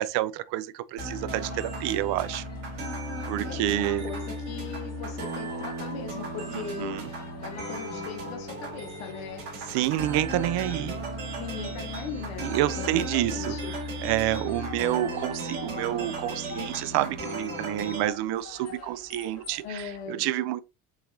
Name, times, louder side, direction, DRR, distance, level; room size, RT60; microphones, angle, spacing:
voice 1, 0.0-2.4 3.3-4.1 6.5-7.1 9.7-11.0 12.4-13.5 14.0-20.6, right 14 dB, 70° right, 0.6 m, -28 dB
sound 1, 1.0-18.0, right 1 dB, 90° right, 2.9 m, -35 dB
sound 2, 1.1-20.1, left 5 dB, 40° left, 1.6 m, -49 dB
voice 2, 3.4-9.4 11.4-13.8 17.5-17.8 19.6-20.2, left 6 dB, 90° left, 1.0 m, -39 dB
6.9 x 3.0 x 2.6 m
supercardioid pair, 80°, 42 cm